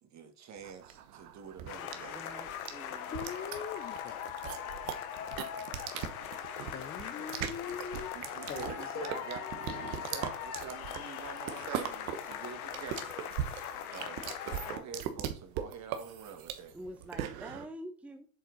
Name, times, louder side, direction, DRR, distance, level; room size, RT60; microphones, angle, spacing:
voice 1, 0.0-2.2 6.5-6.9 7.2-7.5 8.1-9.6 9.9-13.2 13.8-16.7, right 6 dB, 40° right, 1.8 m, -46 dB
sound 1, 0.6-17.7, right 10 dB, 75° right, 1.2 m, -40 dB
sound 2, 1.7-14.8, left 9 dB, 90° left, 1.1 m, -41 dB
voice 2, 1.8-3.2 16.7-18.3, right 1 dB, 5° right, 0.9 m, -47 dB
voice 3, 3.1-5.1 6.7-9.8, left 8 dB, 25° left, 0.5 m, -43 dB
7.7 x 4.3 x 4.0 m
supercardioid pair, 105°, 42 cm